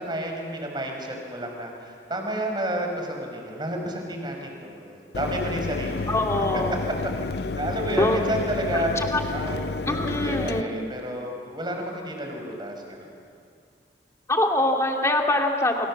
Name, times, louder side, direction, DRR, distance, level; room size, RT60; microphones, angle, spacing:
voice 1, 0.0-6.4 7.5-8.9 9.3-13.1, right 1 dB, 25° right, 2 dB, 5.3 m, -31 dB
Mechanisms, 5.1-10.6, left 3 dB, 65° left, 0.6 m, -30 dB
voice 2, 6.1-6.8 8.0-8.2 9.0-9.2 9.9-10.7 14.3-15.9, left 1 dB, 15° left, 1 dB, 2.7 m, -23 dB
29.0 x 27.0 x 7.4 m, 2.2 s
head